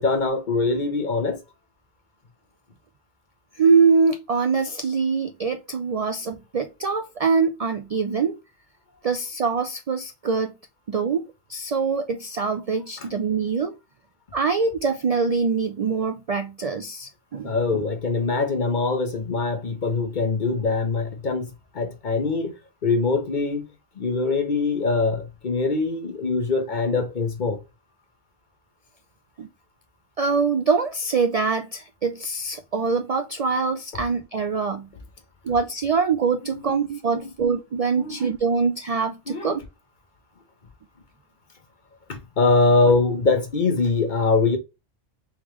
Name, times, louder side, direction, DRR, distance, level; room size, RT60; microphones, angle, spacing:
voice 1, 0.0-1.4 17.4-22.5 22.8-23.6 24.0-27.6 36.4-36.8 37.1-37.3 38.0-38.2 39.3-39.5 42.1-44.6, left 3 dB, 50° left, 1.0 m, -23 dB
voice 2, 3.6-8.4 9.0-10.5 10.9-13.8 14.3-17.8 29.4-29.5 30.2-34.9 35.4-39.6, right 5 dB, 55° right, 0.4 m, -24 dB
3.6 x 3.5 x 3.0 m
omnidirectional pair, 1.1 m